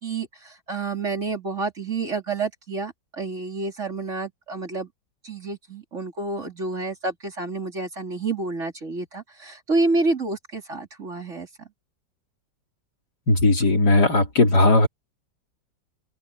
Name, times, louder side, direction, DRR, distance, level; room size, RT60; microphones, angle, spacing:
voice 1, 0.0-4.9 5.2-11.5, right 3 dB, 40° right, 3.4 m, -29 dB
voice 2, 13.3-14.9, left 2 dB, 60° left, 4.3 m, -17 dB
omnidirectional pair, 1.9 m